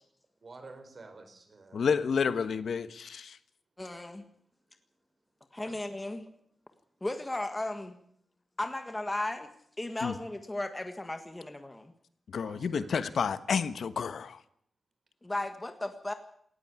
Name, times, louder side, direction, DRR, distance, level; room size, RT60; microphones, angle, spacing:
voice 1, 0.4-1.9 5.7-5.8 12.4-13.2, right 3 dB, 35° right, 7 dB, 4.6 m, -50 dB
voice 2, 1.7-3.4 10.0-10.1 12.3-14.4, left 6 dB, 70° left, 13 dB, 1.3 m, -30 dB
voice 3, 3.8-4.2 5.5-6.3 7.0-8.0 8.6-9.5 9.8-11.9 15.2-16.1, left 1 dB, 15° left, 7 dB, 1.6 m, -35 dB
18.5 x 15.0 x 9.6 m, 0.67 s
wide cardioid pair, 160°, 0 cm